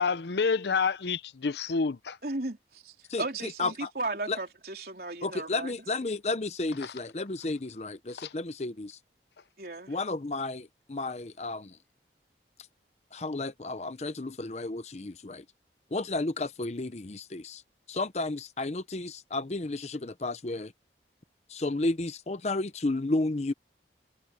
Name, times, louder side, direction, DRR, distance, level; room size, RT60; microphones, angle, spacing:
voice 1, 0.0-2.2 6.8-6.9 8.2-8.3, left 5 dB, 75° left, 0.7 m, -28 dB
voice 2, 2.2-5.7 9.6-10.0, right 2 dB, 55° right, 4.0 m, -35 dB
voice 3, 3.1-3.9 4.3-4.4 5.2-9.0 9.9-11.7 13.1-15.4 15.9-17.6 17.9-20.7 21.5-23.5, left 2 dB, 40° left, 0.7 m, -32 dB
head